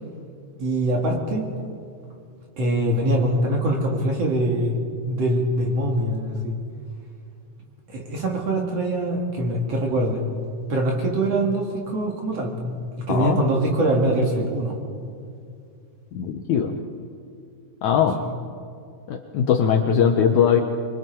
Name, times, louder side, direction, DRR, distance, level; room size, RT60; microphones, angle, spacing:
voice 1, 0.6-1.5 2.6-4.7 5.1-6.6 7.9-10.2 10.7-14.8 18.2-18.3, right 1 dB, 50° right, 0 dB, 2.6 m, -23 dB
voice 2, 13.1-13.5 16.1-16.8 17.8-18.2 19.1-20.6, left 7 dB, 70° left, 4 dB, 1.9 m, -20 dB
25.0 x 23.0 x 4.6 m, 2.4 s
omnidirectional pair, 4.2 m